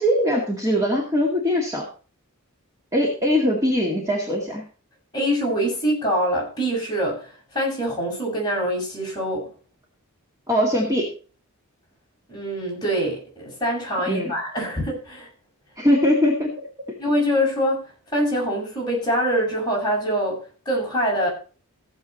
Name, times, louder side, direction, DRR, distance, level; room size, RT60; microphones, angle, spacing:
voice 1, 0.0-1.9 2.9-4.6 10.5-11.1 14.1-14.3 15.8-16.7, equal, 15° right, -2 dB, 2.1 m, -21 dB
voice 2, 5.1-9.5 12.3-15.3 17.0-21.3, equal, 20° left, -3 dB, 6.2 m, -24 dB
16.0 x 7.6 x 4.2 m, 0.38 s
head